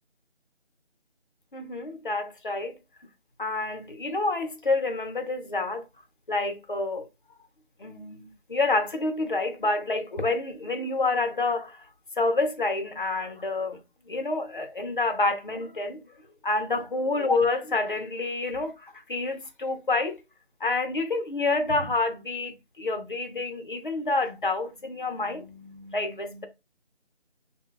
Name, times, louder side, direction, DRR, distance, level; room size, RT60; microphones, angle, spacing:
voice 1, 1.5-2.8 3.4-5.8 6.3-7.1 7.8-11.9 12.2-13.8 14.1-16.0 16.4-20.2 20.6-26.5, left 3 dB, 50° left, 0.7 m, -28 dB
3.2 x 2.2 x 3.7 m
figure-of-eight pair, 170°, 33 cm